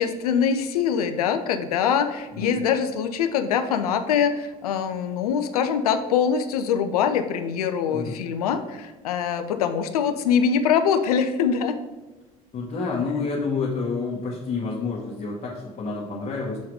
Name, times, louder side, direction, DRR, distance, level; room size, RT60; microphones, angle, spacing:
voice 1, 0.0-11.7, left 7 dB, 80° left, 8 dB, 0.6 m, -23 dB
voice 2, 12.5-16.6, left 4 dB, 40° left, -5 dB, 1.8 m, -28 dB
6.8 x 4.6 x 4.8 m, 1.2 s
hypercardioid pair, 60°, 19 cm